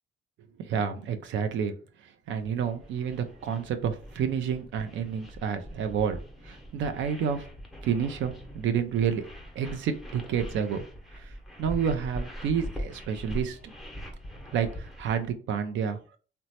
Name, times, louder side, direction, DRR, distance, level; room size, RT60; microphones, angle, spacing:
voice 1, 0.6-1.7 2.3-6.2 6.4-7.4 7.8-9.3 9.6-10.8 11.2-11.3 11.6-13.7 14.5-16.0, right 7 dB, 70° right, 8 dB, 0.4 m, -29 dB
sound 1, 2.4-15.2, equal, ahead, 0.7 m, -42 dB
2.9 x 2.1 x 2.7 m, 0.39 s
cardioid pair, 90°, 20 cm